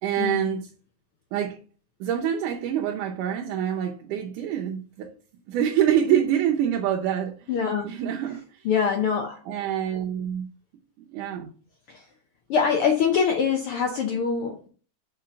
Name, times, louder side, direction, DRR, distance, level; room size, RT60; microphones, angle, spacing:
voice 1, 0.0-0.7 1.3-1.6 2.0-5.1 5.5-8.7 9.5-10.5 11.1-11.5, right 9 dB, 90° right, 2.4 m, -26 dB
voice 2, 7.5-7.9 8.6-9.4 11.9-12.0 12.5-14.7, left 6 dB, 70° left, 1.3 m, -24 dB
5.8 x 5.0 x 5.7 m
omnidirectional pair, 3.5 m